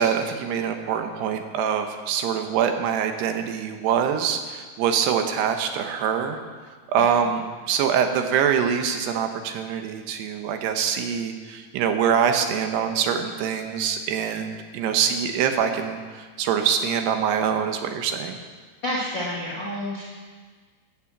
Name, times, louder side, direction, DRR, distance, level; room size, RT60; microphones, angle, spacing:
voice 1, 0.0-6.4 6.9-18.4, right 8 dB, 80° right, 6 dB, 3.1 m, -24 dB
voice 2, 18.8-20.0, left 1 dB, 35° left, -4 dB, 2.0 m, -29 dB
14.5 x 8.8 x 7.3 m, 1.5 s
omnidirectional pair, 4.7 m